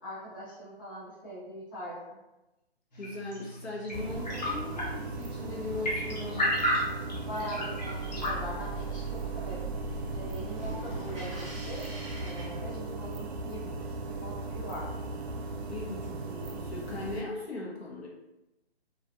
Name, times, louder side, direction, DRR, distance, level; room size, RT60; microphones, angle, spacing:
voice 1, 0.0-2.2 7.2-9.7 10.1-11.9 12.1-14.9, equal, 20° left, -11 dB, 0.6 m, -42 dB
voice 2, 2.9-6.6 10.6-11.0 15.7-18.1, left 3 dB, 75° left, -3 dB, 0.9 m, -39 dB
sound 1, 2.9-8.3, equal, 40° left, 0.9 m, -34 dB
sound 2, 3.9-17.2, right 3 dB, 80° right, 0.5 m, -38 dB
sound 3, 8.0-13.3, right 3 dB, 30° right, 0.6 m, -41 dB
2.5 x 2.1 x 2.5 m, 0.98 s
hypercardioid pair, 165°, 32 cm